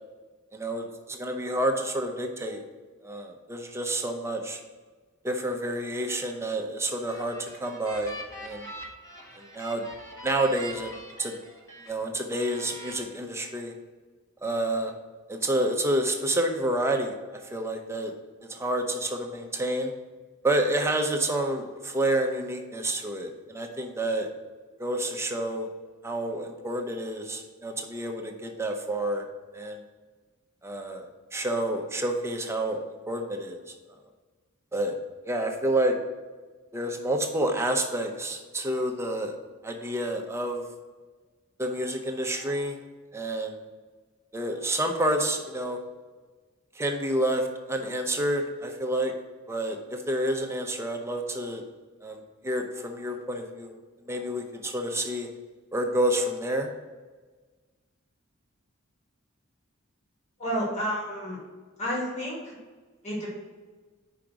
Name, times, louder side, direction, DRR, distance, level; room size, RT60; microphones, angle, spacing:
voice 1, 0.5-2.6 3.0-4.6 5.2-8.1 8.4-8.7 9.4-9.8 10.2-11.4 11.9-13.7 14.4-14.9 15.3-18.1 18.5-19.9 20.4-24.3 24.8-25.7 26.0-29.3 29.5-29.8 30.6-33.7 34.7-35.0 35.2-36.0 36.7-39.4 39.6-40.6 41.6-42.8 43.1-43.6 44.3-45.8 46.8-49.1 49.5-51.6 52.0-53.8 54.0-55.3 55.7-56.7, right 1 dB, 15° right, 3 dB, 0.7 m, -29 dB
sound 1, 6.8-11.9 12.3-12.9, equal, 15° left, 1.1 m, -43 dB
voice 2, 60.4-61.4 61.8-62.6 63.0-63.3, equal, 35° left, -4 dB, 2.0 m, -30 dB
5.1 x 5.0 x 5.9 m, 1.4 s
head